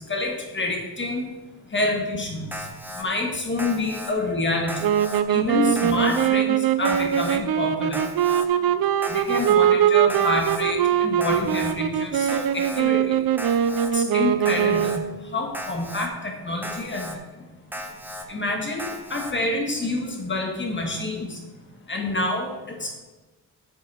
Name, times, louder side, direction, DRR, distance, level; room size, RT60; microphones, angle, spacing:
voice 1, 0.1-1.3 1.7-2.4 3.0-4.7 5.3-8.0 9.1-13.2 13.9-15.0 15.3-17.1 18.3-21.3 21.9-23.0, left 2 dB, 30° left, 1 dB, 1.7 m, -27 dB
Alarm, 2.5-3.0 3.6-4.1 4.7-5.2 5.8-6.3 6.8-7.4 7.9-8.5 9.0-9.6 10.1-10.6 11.2-11.7 12.3-12.8 13.4-13.9 14.5-15.0 15.5-16.1 16.6-17.2 17.7-18.3 18.8-19.3, equal, 5° right, 1.0 m, -36 dB
sound 1, 4.8-15.2, right 10 dB, 65° right, 0.6 m, -22 dB
8.2 x 5.6 x 6.2 m, 1.2 s
cardioid pair, 110°, 38 cm